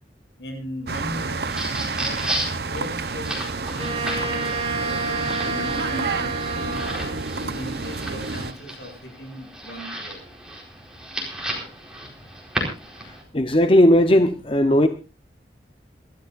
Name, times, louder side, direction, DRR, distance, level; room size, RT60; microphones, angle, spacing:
voice 1, 0.4-1.5 1.9-6.9 7.3-10.2, left 1 dB, 75° left, 8.0 m, -38 dB
sound 1, 0.9-8.5, right 3 dB, 60° right, 0.9 m, -30 dB
sound 2, 1.2-13.2, right 1 dB, 5° right, 4.4 m, -34 dB
Wind instrument woodwind instrument, 3.8-7.3, right 3 dB, 30° right, 3.6 m, -29 dB
voice 2, 13.3-14.9, left 1 dB, 30° left, 0.8 m, -16 dB
27.0 x 13.0 x 2.5 m
head